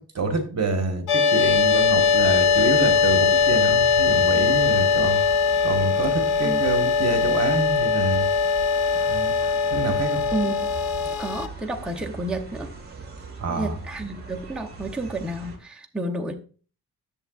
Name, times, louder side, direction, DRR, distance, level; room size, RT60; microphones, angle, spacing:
voice 1, 0.0-5.2 5.6-8.3 9.1-9.3 9.7-10.2 11.0-11.2 13.4-13.7, right 3 dB, 40° right, 5 dB, 1.3 m, -27 dB
sound 1, 1.1-11.1, left 5 dB, 80° left, 1.1 m, -21 dB
sound 2, 1.1-11.5, left 9 dB, 55° left, 0.8 m, -33 dB
sound 3, 1.4-15.6, right 3 dB, 25° right, 1.6 m, -40 dB
voice 2, 10.3-10.7 11.2-12.7 13.5-16.4, right 2 dB, ahead, 1 dB, 0.6 m, -30 dB
10.5 x 7.0 x 2.4 m, 0.38 s
wide cardioid pair, 160°, 38 cm